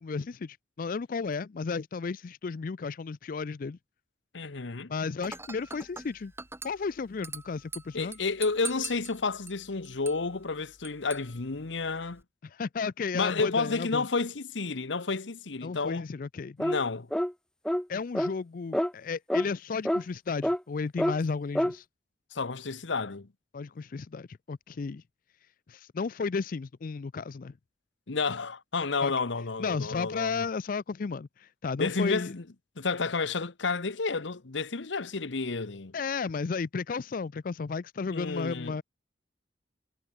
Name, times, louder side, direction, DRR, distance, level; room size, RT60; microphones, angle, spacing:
voice 1, 0.0-3.8 4.9-6.3 6.6-8.2 12.4-14.1 15.6-16.6 17.9-21.9 23.5-25.0 25.7-27.5 29.0-29.1 29.6-32.3 35.9-38.8, left 4 dB, 50° left, 0.4 m, -33 dB
voice 2, 4.3-4.9 7.9-12.2 13.1-16.1 16.6-17.1 22.3-23.3 28.1-30.4 31.8-32.4 32.8-35.9 38.1-38.8, left 4 dB, 85° left, 1.1 m, -31 dB
Dishes pots and pans / Glass, 5.2-12.2, right 4 dB, 15° right, 5.3 m, -44 dB
sound 1, 16.6-16.8 17.1-17.3 17.6-17.8 18.1-18.3 18.7-18.9 19.3-19.5 19.8-20.0 20.4-20.6 21.0-21.2 21.5-21.7, equal, 5° left, 0.7 m, -27 dB
head